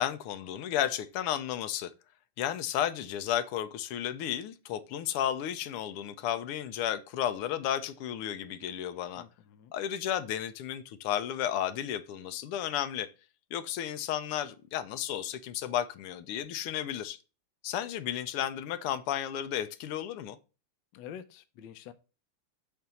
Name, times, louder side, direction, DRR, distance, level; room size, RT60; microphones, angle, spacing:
voice 1, 0.0-1.9 2.4-9.2 9.7-13.1 13.5-17.2 17.6-20.4, left 10 dB, 85° left, 1.6 m, -33 dB
voice 2, 9.2-9.7 20.9-21.9, left 9 dB, 70° left, 1.2 m, -47 dB
6.8 x 3.5 x 4.2 m
omnidirectional pair, 2.4 m